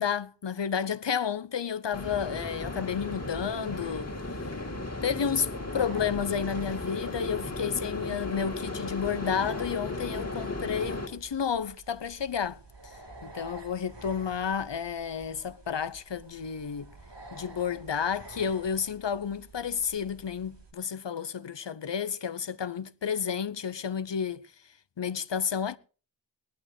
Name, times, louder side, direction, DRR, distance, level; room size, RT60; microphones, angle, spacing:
voice 1, 0.0-4.5 5.0-12.9 13.2-16.9 17.3-24.5 25.0-25.8, left 7 dB, 80° left, 0.8 m, -31 dB
sound 1, 1.9-11.1, left 2 dB, 35° left, 2.5 m, -35 dB
sound 2, 3.4-20.7, right 2 dB, 75° right, 3.1 m, -50 dB
18.5 x 11.5 x 4.4 m
wide cardioid pair, 45°, 43 cm